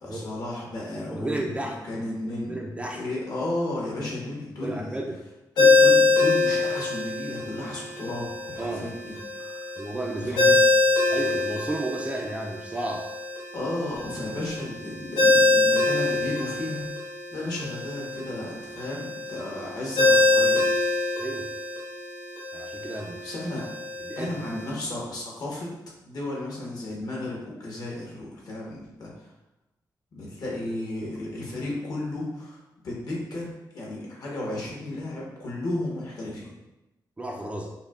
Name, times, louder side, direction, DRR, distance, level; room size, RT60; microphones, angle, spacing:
voice 1, 0.0-4.9 5.6-9.6 10.3-10.6 13.5-20.7 23.2-23.7 24.2-25.7 26.0-29.3 30.1-36.5, left 1 dB, 55° left, -4 dB, 1.1 m, -34 dB
voice 2, 1.1-1.8 2.5-3.0 4.6-5.2 8.6-8.9 9.8-10.5 11.1-13.1 21.2-21.5 22.5-23.2 24.0-24.3 37.2-37.7, right 1 dB, 15° right, 1 dB, 0.3 m, -32 dB
Ringtone, 5.6-24.7, left 3 dB, 90° left, 0.9 m, -24 dB
5.4 x 2.1 x 2.4 m, 0.95 s
wide cardioid pair, 135°, 8 cm